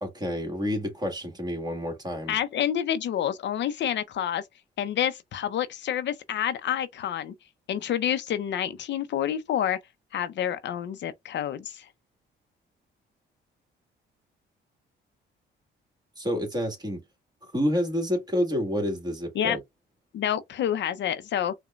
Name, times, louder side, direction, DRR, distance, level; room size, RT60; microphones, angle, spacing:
voice 1, 0.0-2.4 16.2-17.0 17.4-19.6, equal, 20° right, 1.6 m, -29 dB
voice 2, 2.3-4.4 4.8-7.3 7.7-9.8 10.1-11.9 19.4-19.6 20.1-21.5, left 10 dB, 65° left, 0.6 m, -28 dB
4.9 x 2.2 x 2.3 m
cardioid pair, 90°, 20 cm